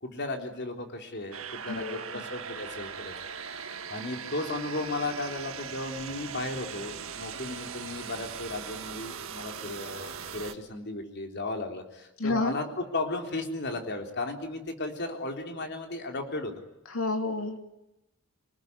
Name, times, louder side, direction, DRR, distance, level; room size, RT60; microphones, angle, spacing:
voice 1, 0.0-3.1 3.4-16.6, left 2 dB, 55° left, 4 dB, 3.7 m, -35 dB
sound 1, 1.3-10.5, right 6 dB, 75° right, 1.8 m, -40 dB
voice 2, 1.7-2.0 12.2-12.6 16.9-17.6, left 3 dB, 75° left, 6 dB, 2.8 m, -29 dB
26.0 x 19.5 x 9.7 m, 0.90 s
head